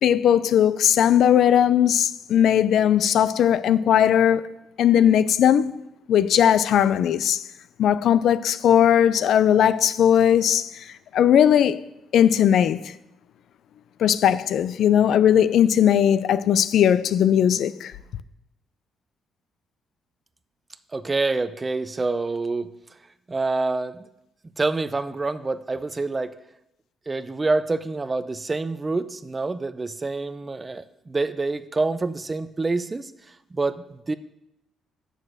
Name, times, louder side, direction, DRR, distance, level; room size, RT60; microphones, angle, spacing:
voice 1, 0.0-4.5 4.8-7.4 7.8-11.8 12.1-12.9 14.0-17.9, left 9 dB, 70° left, 0.4 m, -19 dB
voice 2, 20.9-22.7 23.3-24.1 24.6-26.3 27.1-33.1 33.5-34.2, right 3 dB, 25° right, 0.5 m, -27 dB
7.3 x 6.4 x 6.4 m
cardioid pair, 90°, 0 cm